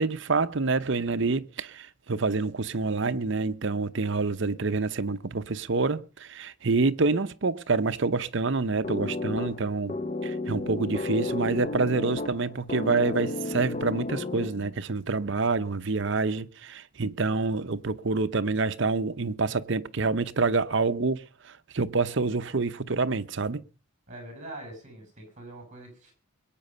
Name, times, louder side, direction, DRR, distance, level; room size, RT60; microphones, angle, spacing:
voice 1, 0.0-10.0 10.2-23.6, right 3 dB, 55° right, 0.7 m, -27 dB
sound 1, 8.8-14.8, left 2 dB, 30° left, 0.6 m, -33 dB
voice 2, 24.1-26.1, right 1 dB, 35° right, 7.0 m, -43 dB
21.5 x 9.1 x 5.4 m
head